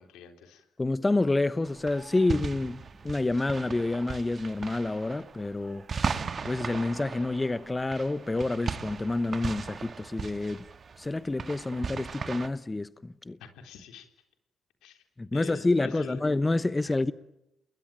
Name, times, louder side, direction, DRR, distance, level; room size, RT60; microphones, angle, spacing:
voice 1, 0.0-0.7 13.4-14.1 14.8-15.0 15.3-16.3 16.8-17.0, left 7 dB, 90° left, 3.9 m, -46 dB
voice 2, 0.8-5.9 6.4-10.6 11.0-13.4 15.2-17.1, left 2 dB, 15° left, 0.9 m, -28 dB
sound 1, 1.6-12.5, right 5 dB, 45° right, 1.7 m, -37 dB
29.0 x 21.5 x 9.2 m
cardioid pair, 90°, 0 cm